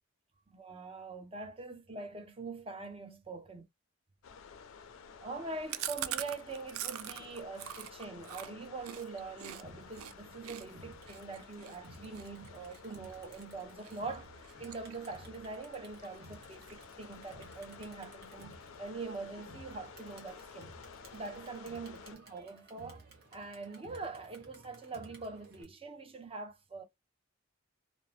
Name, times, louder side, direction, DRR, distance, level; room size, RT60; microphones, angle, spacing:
voice 1, 0.5-3.6 5.2-14.3 14.6-20.7 21.1-23.0 23.3-26.8, right 3 dB, 25° right, 0.5 m, -43 dB
sound 1, 4.2-22.2, left 6 dB, 75° left, 0.4 m, -53 dB
Chewing mastication, 5.7-9.6 9.9-10.1 10.4-13.4 13.8-14.2 14.4-15.3 15.6-15.7 16.0-16.1 16.4-17.0, right 11 dB, 80° right, 0.3 m, -42 dB
Crowd, 9.6-25.6, right 1 dB, 50° right, 1.1 m, -56 dB
2.6 x 2.0 x 3.0 m
head